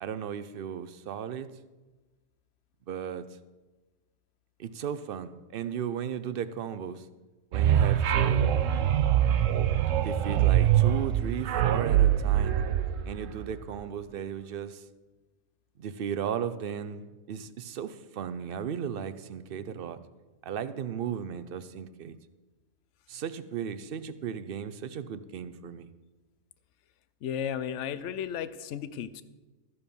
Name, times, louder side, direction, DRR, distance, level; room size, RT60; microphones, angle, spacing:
voice 1, 0.0-1.5 2.9-3.3 4.6-7.0 7.5-8.5 10.0-12.6 13.1-14.8 15.8-20.0 20.4-22.2 23.1-25.9, right 8 dB, 55° right, 13 dB, 0.7 m, -35 dB
sound 1, 7.5-13.7, right 10 dB, 90° right, 1.0 m, -24 dB
voice 2, 27.2-29.2, left 8 dB, 70° left, 14 dB, 0.9 m, -34 dB
14.0 x 7.1 x 5.3 m, 1.2 s
omnidirectional pair, 1.3 m